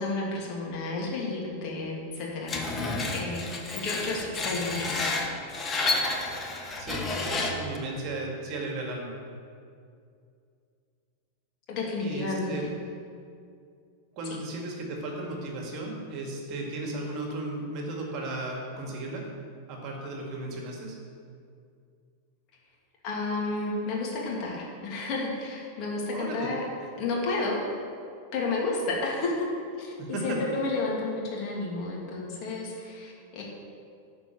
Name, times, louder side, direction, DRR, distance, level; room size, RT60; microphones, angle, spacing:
voice 1, 0.0-2.7 3.1-5.2 11.7-12.7 23.0-26.7 27.0-27.6 28.3-29.5 29.8-33.4, left 3 dB, 40° left, -3 dB, 2.7 m, -31 dB
Screech, 2.5-7.8, left 3 dB, 20° left, 1.3 m, -30 dB
voice 2, 6.8-9.1 12.0-12.6 14.2-19.3 19.7-21.0 26.1-26.5 30.0-30.4, right 2 dB, 40° right, 0 dB, 2.0 m, -35 dB
12.0 x 5.2 x 7.6 m, 2.4 s
figure-of-eight pair, 90°, 0 cm